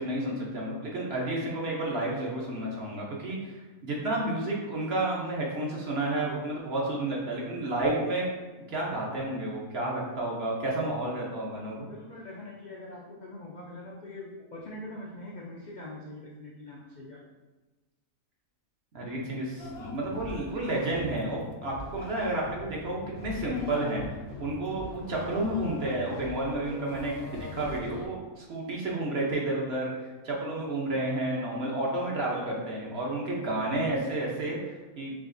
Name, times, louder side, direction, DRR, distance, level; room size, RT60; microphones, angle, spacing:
voice 1, 0.0-8.3 8.7-11.9 18.9-35.1, right 1 dB, 55° right, -3 dB, 0.9 m, -31 dB
voice 2, 11.9-17.2, left 1 dB, 60° left, -4 dB, 0.4 m, -43 dB
sound 1, 19.6-28.1, left 2 dB, 75° left, 1.0 m, -42 dB
4.8 x 3.0 x 2.6 m, 1.2 s
omnidirectional pair, 1.5 m